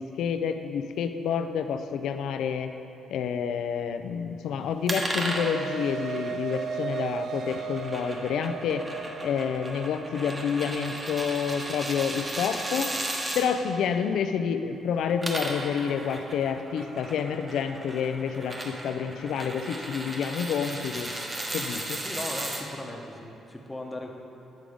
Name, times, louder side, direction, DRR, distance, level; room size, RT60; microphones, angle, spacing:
voice 1, 0.0-2.8 3.1-8.9 9.2-12.9 13.3-21.1 21.5-22.0, left 7 dB, 75° left, 8 dB, 0.4 m, -29 dB
sound 1, 4.7-13.2, right 6 dB, 70° right, 0.3 m, -37 dB
sound 2, 4.9-13.5 15.0-22.6, right 1 dB, 25° right, 0.9 m, -35 dB
voice 2, 22.0-24.1, left 1 dB, 15° left, 1 dB, 0.8 m, -37 dB
8.3 x 3.8 x 4.9 m, 2.8 s
cardioid pair, 90°, 0 cm